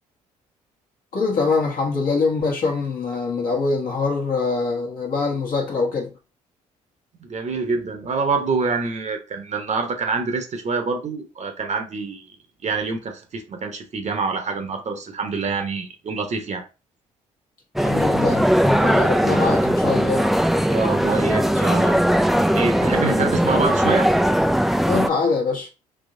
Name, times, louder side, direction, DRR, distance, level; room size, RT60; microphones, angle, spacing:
voice 1, 1.1-6.1 17.8-20.3 22.8-23.2 24.9-25.7, left 4 dB, 55° left, 1.2 m, -24 dB
voice 2, 7.2-12.3 12.6-16.6 20.7-22.0 22.5-24.1, right 4 dB, 45° right, 0.9 m, -26 dB
sound 1, 17.8-25.1, equal, ahead, 0.3 m, -19 dB
3.4 x 2.9 x 2.7 m
hypercardioid pair, 50°, 17 cm